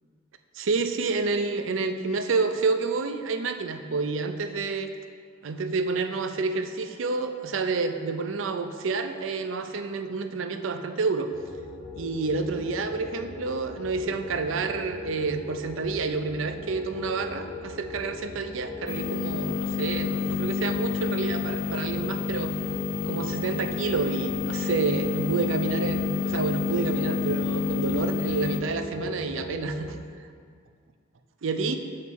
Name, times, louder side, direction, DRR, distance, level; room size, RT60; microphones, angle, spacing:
voice 1, 0.5-4.9 5.4-11.3 12.0-22.5 22.9-30.0 31.4-31.8, right 4 dB, 90° right, 8 dB, 0.5 m, -29 dB
sound 1, 11.3-29.9, left 3 dB, 30° left, 0.9 m, -39 dB
sound 2, 18.9-28.6, left 6 dB, 50° left, 0.5 m, -29 dB
7.0 x 6.5 x 4.1 m, 2.1 s
head